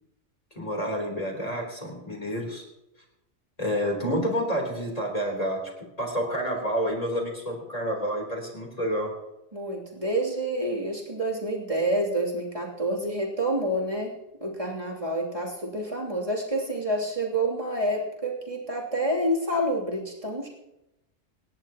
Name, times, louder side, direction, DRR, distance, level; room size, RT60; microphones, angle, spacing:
voice 1, 0.6-2.6 3.6-5.6 6.0-9.1, equal, 30° left, -1 dB, 3.7 m, -29 dB
voice 2, 9.5-14.1 14.4-20.5, right 1 dB, 30° right, -3 dB, 3.0 m, -28 dB
26.5 x 11.0 x 2.9 m, 0.93 s
omnidirectional pair, 1.3 m